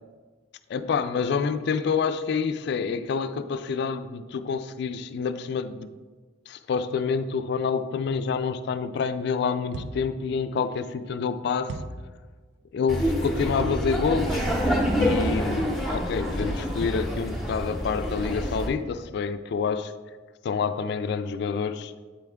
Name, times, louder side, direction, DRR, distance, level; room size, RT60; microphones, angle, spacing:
voice 1, 0.7-5.9 6.5-11.7 12.7-14.5 15.0-19.9 20.4-21.9, left 5 dB, 60° left, 0.3 m, -27 dB
sound 1, 9.7-10.2 11.7-12.1 13.6-14.0, right 2 dB, 70° right, 0.4 m, -36 dB
Laughter, 12.9-18.7, equal, ahead, 0.9 m, -27 dB
8.3 x 3.5 x 3.3 m
head